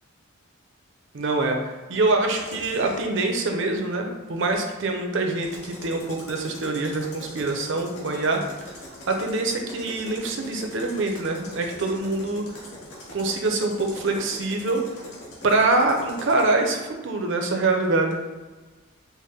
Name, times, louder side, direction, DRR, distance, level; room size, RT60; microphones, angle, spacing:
voice 1, 1.1-1.6 1.9-8.4 9.1-12.4 13.1-14.8 15.4-18.2, right 2 dB, 55° right, 3 dB, 0.5 m, -24 dB
sound 1, 2.3-3.0 5.3-16.5, left 1 dB, 85° left, 1.0 m, -42 dB
4.0 x 2.1 x 3.6 m, 1.3 s
head